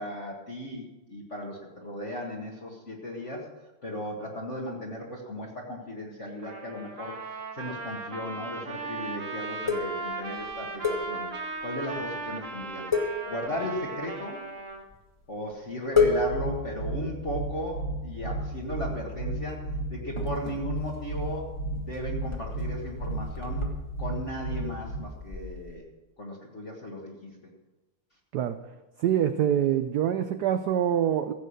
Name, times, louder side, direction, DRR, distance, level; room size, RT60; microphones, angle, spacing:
voice 1, 0.0-3.5 3.8-7.2 7.5-11.3 11.6-12.9 13.3-14.4 15.3-19.6 19.9-23.6 24.0-25.9 26.2-27.3, left 1 dB, 35° left, -3 dB, 1.9 m, -36 dB
Trumpet, 6.4-14.8, right 3 dB, 40° right, 1.4 m, -37 dB
sound 1, 9.6-11.6 12.0-12.2 12.4-12.6 12.9-14.0 14.7-15.2 15.5-15.6 15.9-18.0 18.6-19.2 19.5-25.8, left 4 dB, 15° left, 1.4 m, -31 dB
sound 2, 16.0-25.0, right 2 dB, 70° left, 4.2 m, -33 dB
voice 2, 29.0-31.3, right 10 dB, 75° right, 9 dB, 0.9 m, -25 dB
15.5 x 7.9 x 6.5 m, 1.1 s
omnidirectional pair, 2.4 m